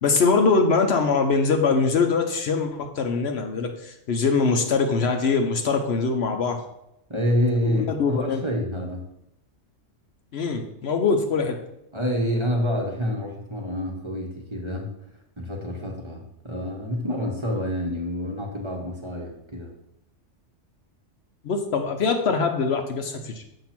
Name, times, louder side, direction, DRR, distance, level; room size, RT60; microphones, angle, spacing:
voice 1, 0.0-6.6 7.6-8.4 10.3-11.6 21.4-23.4, left 4 dB, 65° left, 5 dB, 0.9 m, -23 dB
voice 2, 7.1-9.0 11.9-14.9 15.4-19.7, equal, 25° right, -1 dB, 0.9 m, -27 dB
7.2 x 2.9 x 5.8 m, 0.83 s
omnidirectional pair, 1.3 m